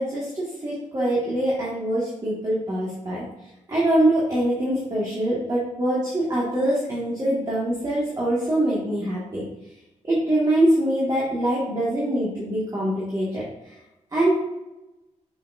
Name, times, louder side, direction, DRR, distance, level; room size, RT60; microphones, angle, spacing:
voice 1, 0.0-3.3 3.7-9.4 10.0-13.4 14.1-14.3, right 1 dB, 30° right, -8 dB, 2.0 m, -23 dB
7.0 x 5.2 x 2.7 m, 0.95 s
cardioid pair, 80°, 13 cm